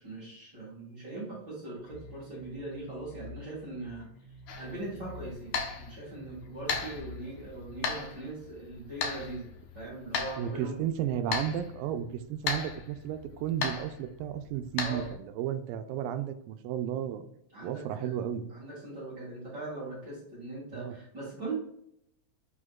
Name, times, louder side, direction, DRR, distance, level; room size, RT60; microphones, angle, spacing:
voice 1, 0.0-4.1 4.6-10.8 14.8-15.1 17.5-18.2 18.5-21.5, right 2 dB, 35° right, -6 dB, 2.0 m, -41 dB
sound 1, 1.8-7.8, left 1 dB, 90° left, 2.8 m, -49 dB
sound 2, 4.5-15.2, left 5 dB, 65° left, 2.1 m, -37 dB
voice 2, 10.4-17.3 17.6-18.5 20.7-21.0, right 10 dB, 80° right, 9 dB, 2.2 m, -33 dB
8.3 x 5.0 x 2.3 m, 0.73 s
omnidirectional pair, 4.1 m